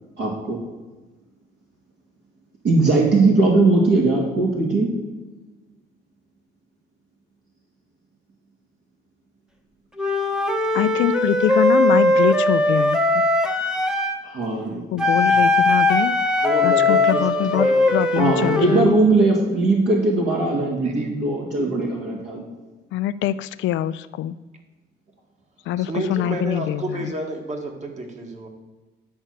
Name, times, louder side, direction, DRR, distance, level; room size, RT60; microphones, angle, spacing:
voice 1, 0.2-0.6 2.6-4.9 14.2-14.8 18.1-22.4, right 3 dB, 60° right, -2 dB, 2.5 m, -19 dB
Wind instrument woodwind instrument, 10.0-14.2 15.0-18.9, left 2 dB, 5° right, 1.0 m, -19 dB
voice 2, 10.7-13.0 14.9-16.2 16.6-18.9 22.9-24.4 25.7-27.1, left 12 dB, 70° left, 13 dB, 0.4 m, -24 dB
voice 3, 16.4-17.9 20.8-21.1 25.8-28.5, right 2 dB, 35° right, 3 dB, 2.0 m, -30 dB
10.5 x 4.4 x 7.9 m, 1.2 s
cardioid pair, 105°, 20 cm